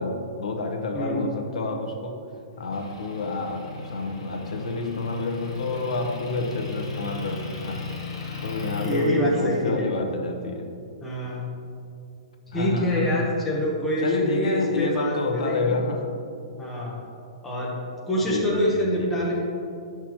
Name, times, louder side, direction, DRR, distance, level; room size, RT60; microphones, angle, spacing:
voice 1, 0.0-2.2 2.6-7.8 8.4-10.7 12.5-13.1 14.0-16.1 18.2-19.2, left 3 dB, 85° left, 4 dB, 0.9 m, -29 dB
voice 2, 0.9-1.2 8.8-9.9 11.0-11.5 12.5-15.8 16.6-17.0 17.4-17.7 18.1-19.3, left 1 dB, 5° left, -4 dB, 0.8 m, -25 dB
Motor vehicle (road) / Engine, 2.7-9.1, left 4 dB, 50° left, 1.4 m, -36 dB
10.0 x 6.0 x 2.9 m, 2.5 s
hypercardioid pair, 175°, 3 cm